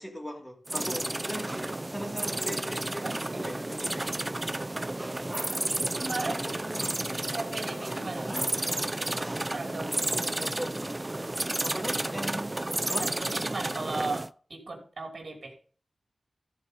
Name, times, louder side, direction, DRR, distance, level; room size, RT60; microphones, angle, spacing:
voice 1, 0.0-4.2 6.4-6.9 8.1-8.4 10.3-10.7 11.6-13.2, equal, 15° left, 2.6 m, -39 dB
sound 1, 0.7-14.3, right 1 dB, 25° right, 0.3 m, -32 dB
voice 2, 3.0-4.0 5.5-6.6 7.3-8.4 9.5-10.0 13.0-15.5, right 3 dB, 75° right, 2.8 m, -37 dB
14.0 x 4.8 x 5.2 m
cardioid pair, 50°, 0 cm